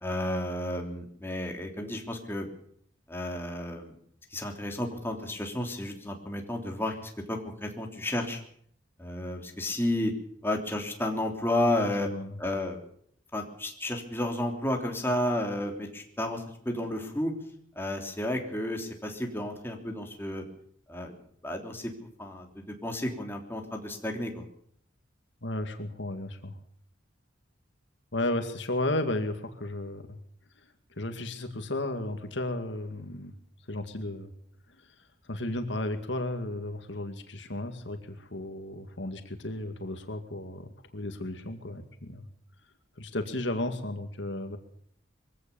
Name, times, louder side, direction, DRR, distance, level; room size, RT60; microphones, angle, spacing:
voice 1, 0.0-2.5 3.1-3.9 4.3-8.4 9.0-10.1 10.4-12.1 12.4-12.8 13.3-17.3 17.7-20.4 20.9-21.1 21.4-21.9 22.2-24.4, left 1 dB, 10° left, 2 dB, 3.3 m, -32 dB
voice 2, 11.9-12.4 25.4-26.6 28.1-30.2 31.0-33.3 33.7-34.3 34.7-34.9 35.2-42.3 43.0-44.6, left 1 dB, 65° left, 6 dB, 2.2 m, -34 dB
23.0 x 16.5 x 7.0 m, 0.63 s
head